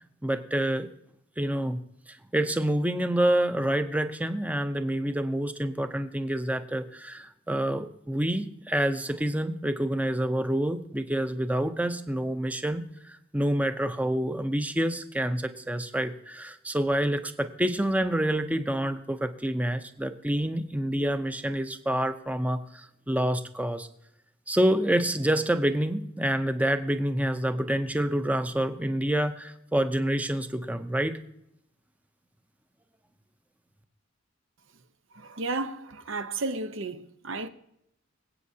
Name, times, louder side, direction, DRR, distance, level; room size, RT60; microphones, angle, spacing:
voice 1, 0.2-0.9 1.4-1.8 2.1-23.9 24.5-31.2, right 1 dB, 5° right, 0.6 m, -27 dB
voice 2, 35.1-37.5, right 3 dB, 80° right, 0.9 m, -33 dB
24.5 x 8.4 x 2.8 m
head